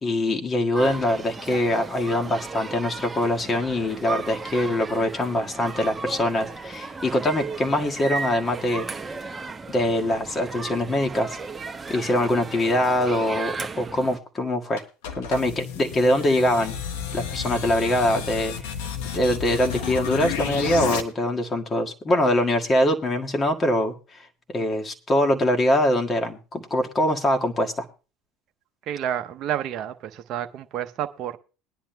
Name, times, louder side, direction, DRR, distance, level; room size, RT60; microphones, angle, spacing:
voice 1, 0.0-8.9 9.7-11.4 11.9-14.8 15.2-16.7 17.1-18.5 19.1-23.9 24.5-27.9, left 1 dB, 30° left, 3 dB, 1.7 m, -23 dB
sound 1, 0.7-14.2, right 4 dB, 20° right, 1.0 m, -35 dB
sound 2, 14.8-21.0, left 7 dB, 75° left, 1.3 m, -31 dB
voice 2, 28.9-31.4, right 10 dB, 50° right, 6 dB, 0.7 m, -30 dB
21.5 x 10.0 x 2.2 m, 0.34 s
hypercardioid pair, 75°, 0 cm